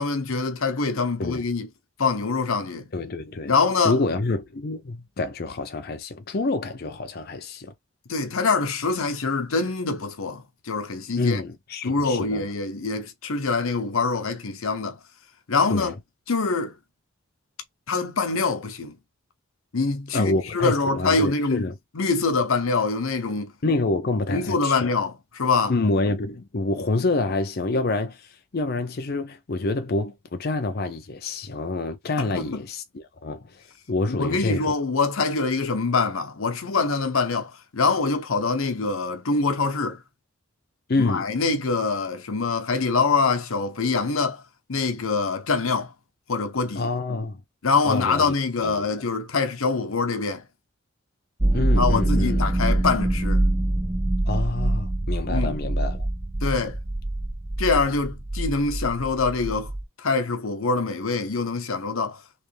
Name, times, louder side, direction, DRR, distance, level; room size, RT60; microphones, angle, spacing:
voice 1, 0.0-1.7 2.0-2.9 3.5-4.0 8.1-11.4 11.8-15.0 15.5-16.0 16.3-16.7 17.9-19.0 19.7-21.7 21.9-23.5 24.3-25.7 32.2-32.6 34.1-40.0 41.0-44.4 44.7-45.9 46.3-46.9 47.6-50.4 51.8-53.4 55.3-55.6 56.4-56.8 57.6-59.7 60.0-62.2, left 4 dB, 85° left, 0.9 m, -24 dB
voice 2, 2.9-3.5 3.8-7.7 11.2-12.4 15.7-15.9 20.1-21.7 23.6-24.9 25.7-33.6 33.9-34.8 40.9-41.3 46.8-47.4 47.8-48.3 48.6-48.9 51.5-52.4 54.3-56.1, left 2 dB, 50° left, 0.6 m, -27 dB
sound 1, 51.4-59.8, right 1 dB, 10° right, 0.3 m, -24 dB
3.3 x 3.1 x 3.2 m
head